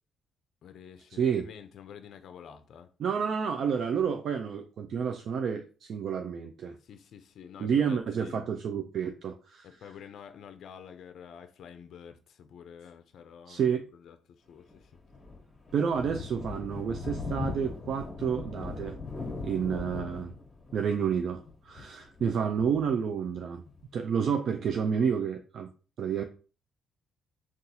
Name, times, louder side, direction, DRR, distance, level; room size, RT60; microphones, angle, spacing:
voice 1, 0.6-2.9 6.8-8.5 9.6-13.6 13.9-14.2 14.5-14.9, left 8 dB, 70° left, 0.4 m, -48 dB
voice 2, 1.2-1.5 3.0-6.8 7.6-9.7 13.5-13.8 15.7-19.0 19.4-20.3 20.7-23.6 23.9-25.7 26.0-26.2, right 7 dB, 65° right, 0.3 m, -30 dB
Thunder, 14.7-23.8, left 4 dB, 30° left, 1.0 m, -40 dB
3.9 x 2.3 x 2.7 m
cardioid pair, 90°, 0 cm